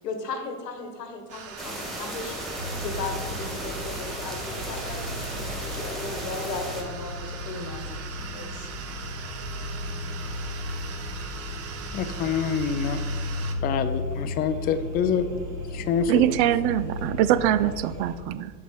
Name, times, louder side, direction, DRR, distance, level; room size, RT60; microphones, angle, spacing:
voice 1, 0.0-2.4 2.7-8.7, left 3 dB, 85° left, 6 dB, 1.4 m, -36 dB
sound 1, 1.3-13.5, right 6 dB, 30° right, 1.0 m, -41 dB
sound 2, 1.6-6.8, equal, ahead, 1.9 m, -35 dB
sound 3, 2.6-18.2, left 1 dB, 80° right, 1.4 m, -35 dB
voice 2, 11.9-13.1 13.6-15.3 15.7-16.4, left 7 dB, 20° left, 9 dB, 0.4 m, -26 dB
voice 3, 16.1-18.5, right 12 dB, 45° right, 14 dB, 0.4 m, -23 dB
7.0 x 5.9 x 4.4 m, 1.5 s
hypercardioid pair, 90°, 48 cm